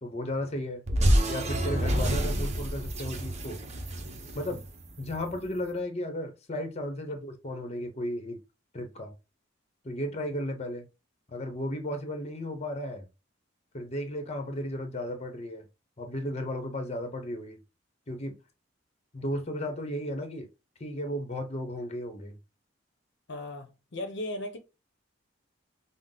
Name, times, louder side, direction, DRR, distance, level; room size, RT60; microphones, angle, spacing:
voice 1, 0.0-0.8 1.3-3.6 4.3-4.6 5.0-8.4 8.7-9.1 9.8-10.9 11.3-13.1 13.7-15.6 16.0-17.6 18.1-18.4 19.1-20.5 20.8-22.3, left 1 dB, 35° left, 0.8 m, -34 dB
sound 1, 0.9-5.3, right 1 dB, 35° right, 0.8 m, -28 dB
voice 2, 23.3-24.6, left 1 dB, 65° left, 0.7 m, -36 dB
5.7 x 2.0 x 3.7 m
head